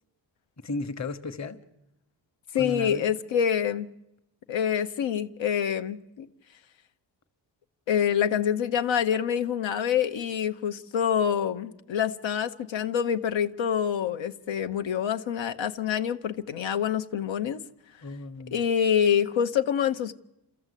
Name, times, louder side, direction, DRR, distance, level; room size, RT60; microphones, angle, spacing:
voice 1, 0.6-1.6 2.6-3.1 18.0-18.6, left 3 dB, 35° left, 1.2 m, -35 dB
voice 2, 2.5-3.9 4.5-6.3 7.9-17.6 18.5-20.1, left 8 dB, 85° left, 0.9 m, -26 dB
30.0 x 14.0 x 8.3 m
wide cardioid pair, 155°, 44 cm